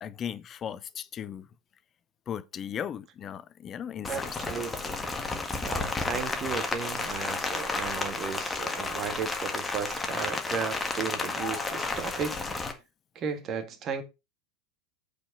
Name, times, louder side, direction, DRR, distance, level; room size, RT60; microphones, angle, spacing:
voice 1, 0.0-1.5 2.3-4.4, left 9 dB, 30° left, 0.8 m, -37 dB
Rain, 4.0-12.7, left 3 dB, 15° left, 1.7 m, -32 dB
voice 2, 4.1-5.0 5.6-12.4 13.2-14.0, right 6 dB, 35° right, 1.9 m, -35 dB
8.6 x 5.1 x 5.5 m
figure-of-eight pair, 85°, 0 cm